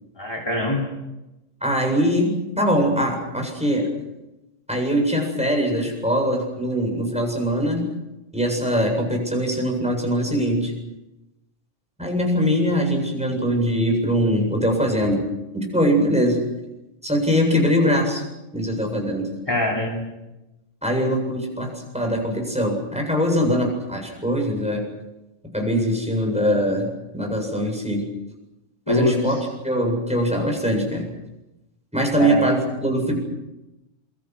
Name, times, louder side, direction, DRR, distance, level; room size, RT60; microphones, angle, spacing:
voice 1, 0.2-0.8 19.5-20.1 28.9-29.4 32.2-32.4, left 2 dB, 20° left, -1 dB, 3.3 m, -23 dB
voice 2, 1.6-3.9 4.7-7.8 8.3-10.7 12.0-15.2 15.5-16.4 17.0-18.2 18.5-19.3 20.8-24.8 25.5-26.9 27.1-28.1 28.9-29.4 29.6-31.1 31.9-33.2, equal, 5° right, 1 dB, 7.8 m, -22 dB
27.5 x 25.0 x 6.2 m, 0.98 s
omnidirectional pair, 1.3 m